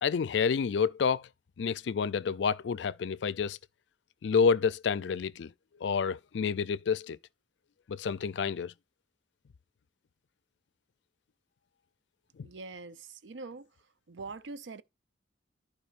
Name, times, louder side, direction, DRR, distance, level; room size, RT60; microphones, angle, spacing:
voice 1, 0.0-1.3 1.6-3.6 4.2-5.5 5.8-7.2 7.9-8.7, left 6 dB, 75° left, 0.4 m, -29 dB
voice 2, 12.4-13.7 14.1-14.8, right 3 dB, 85° right, 0.6 m, -43 dB
14.5 x 4.9 x 2.5 m
head